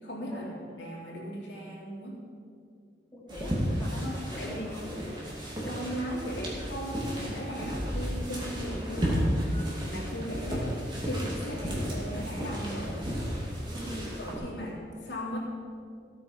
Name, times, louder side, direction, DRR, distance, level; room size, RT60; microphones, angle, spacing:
voice 1, 0.0-2.2 3.9-4.7 5.6-9.3 9.6-10.7 11.0-13.1 14.2-14.8 15.0-15.4, equal, 80° left, -5 dB, 3.8 m, -37 dB
voice 2, 3.1-5.1 13.7-14.0, equal, 15° left, -7 dB, 3.7 m, -42 dB
sound 1, 3.3-14.4, equal, 25° right, 2.5 m, -33 dB
sound 2, 3.3-13.6, right 1 dB, 80° right, 3.4 m, -49 dB
15.5 x 8.7 x 5.7 m, 2.2 s
head